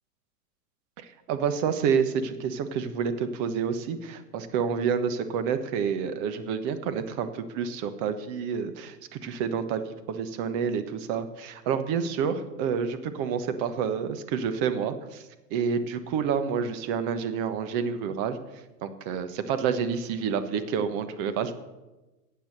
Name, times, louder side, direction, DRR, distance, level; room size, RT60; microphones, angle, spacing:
voice 1, 1.0-15.2 15.5-18.4 18.8-21.5, right 6 dB, 40° right, 10 dB, 1.2 m, -29 dB
12.0 x 8.2 x 6.8 m, 1.1 s
hypercardioid pair, 120°, 49 cm